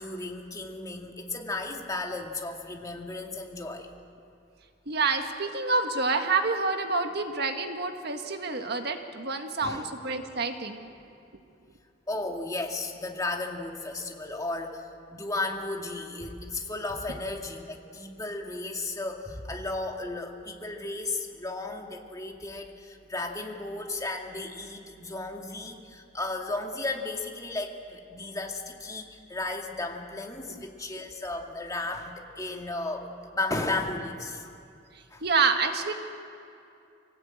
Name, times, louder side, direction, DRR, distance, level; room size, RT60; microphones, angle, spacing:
voice 1, 0.0-3.9 9.6-9.8 12.1-34.5 35.1-35.2, left 2 dB, 20° left, 2 dB, 2.1 m, -34 dB
voice 2, 4.9-10.9 30.5-30.6 35.2-35.9, right 4 dB, 60° right, 6 dB, 1.6 m, -28 dB
24.5 x 18.0 x 8.8 m, 2.6 s
head